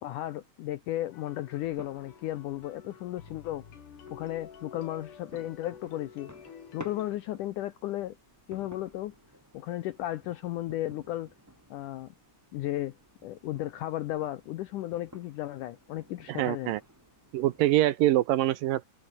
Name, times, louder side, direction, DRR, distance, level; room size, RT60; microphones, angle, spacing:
voice 1, 0.0-3.6 4.1-6.3 6.7-8.2 8.5-9.2 9.5-11.3 11.7-12.1 12.5-16.7, left 14 dB, 75° left, 1.9 m, -34 dB
sound 1, 1.1-7.2, left 7 dB, 55° left, 4.2 m, -50 dB
sound 2, 1.6-17.9, right 1 dB, 5° right, 4.2 m, -54 dB
voice 2, 16.3-16.8 17.3-18.9, right 15 dB, 75° right, 2.3 m, -24 dB
open air
omnidirectional pair, 4.5 m